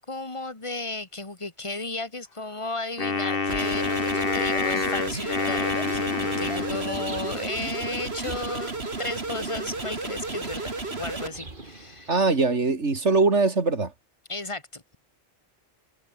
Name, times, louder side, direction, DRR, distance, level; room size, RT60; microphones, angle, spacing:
voice 1, 0.0-12.1 14.3-15.0, left 2 dB, 25° left, 2.2 m, -34 dB
Wind instrument woodwind instrument, 3.0-7.4, left 4 dB, 55° left, 2.0 m, -27 dB
sound 1, 3.5-11.3, right 3 dB, 65° right, 3.2 m, -33 dB
sound 2, 6.3-12.6, right 2 dB, 45° right, 3.2 m, -44 dB
voice 2, 12.1-13.9, right 3 dB, 80° right, 3.1 m, -22 dB
omnidirectional pair, 1.2 m